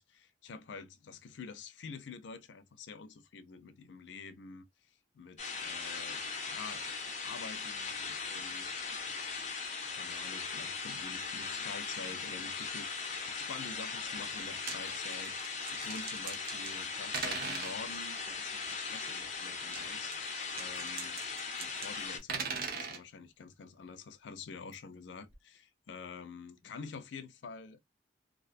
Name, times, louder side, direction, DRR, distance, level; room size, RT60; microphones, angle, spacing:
voice 1, 0.0-9.3 9.9-21.2 21.6-27.8, left 4 dB, 90° left, 0.4 m, -48 dB
sound 1, 5.4-22.2, left 5 dB, 40° left, 0.6 m, -39 dB
sound 2, 14.4-14.8 15.1-16.8 17.1-17.8 19.6-21.9 22.1-23.0 24.7-24.8 25.3-25.4, right 5 dB, 55° right, 0.6 m, -40 dB
2.3 x 2.2 x 2.5 m
head